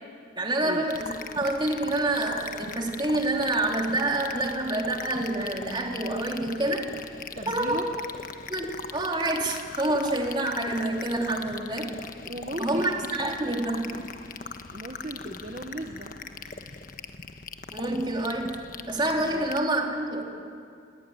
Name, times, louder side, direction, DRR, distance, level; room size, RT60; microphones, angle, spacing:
voice 1, 0.3-6.9 7.5-7.9 8.5-12.1 12.6-14.0 17.7-18.6 18.9-20.2, right 2 dB, 25° right, 1 dB, 3.3 m, -27 dB
sound 1, 0.9-19.6, left 4 dB, 45° left, 1.4 m, -40 dB
voice 2, 7.3-7.9 12.2-13.0 14.7-16.1 19.3-19.5, right 1 dB, 40° right, 3 dB, 1.4 m, -36 dB
30.0 x 21.0 x 9.5 m, 2.4 s
head